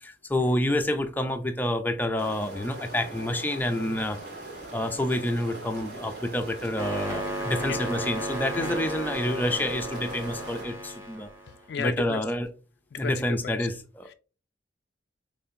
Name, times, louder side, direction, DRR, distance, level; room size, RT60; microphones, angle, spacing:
voice 1, 0.0-4.2 4.7-11.3 11.8-12.5 13.0-14.1, left 1 dB, 10° left, 0.5 m, -28 dB
sound 1, 2.2-10.6, right 2 dB, 60° right, 1.9 m, -41 dB
sound 2, 6.8-11.6, right 1 dB, 15° right, 1.1 m, -34 dB
voice 2, 11.5-12.2 12.9-13.7 14.1-14.2, left 6 dB, 65° left, 0.3 m, -35 dB
5.4 x 3.3 x 2.8 m
head